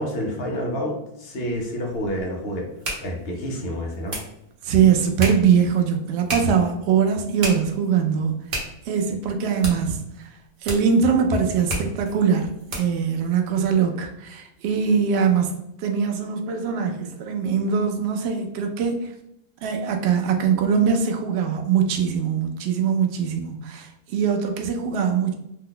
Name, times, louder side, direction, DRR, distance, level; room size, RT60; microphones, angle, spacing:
voice 1, 0.0-2.7 3.0-4.2, equal, 55° left, 0 dB, 0.7 m, -28 dB
sound 1, 1.5-13.1, right 1 dB, 45° right, 0.9 m, -35 dB
voice 2, 4.6-8.4 8.9-10.3 10.6-15.5 15.8-19.1 19.6-25.3, right 6 dB, 85° right, 4 dB, 0.5 m, -22 dB
2.8 x 2.1 x 3.7 m, 0.80 s
omnidirectional pair, 1.7 m